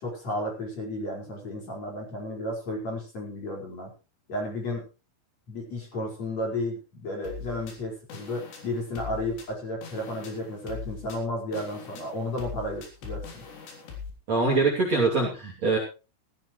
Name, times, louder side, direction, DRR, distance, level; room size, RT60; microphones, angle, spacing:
voice 1, 0.0-3.9 4.3-4.9 5.5-13.4, left 1 dB, 35° left, -1 dB, 5.9 m, -33 dB
sound 1, 7.2-14.1, left 6 dB, 60° left, 5.4 m, -41 dB
voice 2, 14.3-15.8, right 3 dB, 40° right, 0 dB, 3.4 m, -23 dB
16.0 x 15.5 x 3.2 m, 0.32 s
omnidirectional pair, 5.8 m